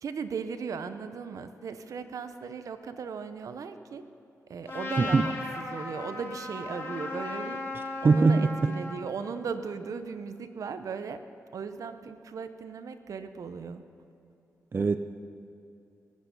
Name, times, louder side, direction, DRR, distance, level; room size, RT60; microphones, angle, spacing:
voice 1, 0.0-4.1 4.5-11.2 11.5-13.8, right 5 dB, 70° right, 10 dB, 0.8 m, -37 dB
Trumpet, 4.7-9.0, left 2 dB, 45° left, 3.9 m, -36 dB
voice 2, 5.0-5.3 8.0-8.7 14.7-15.0, right 4 dB, 40° right, 10 dB, 0.5 m, -22 dB
20.5 x 8.4 x 5.2 m, 2.9 s
cardioid pair, 75°, 6 cm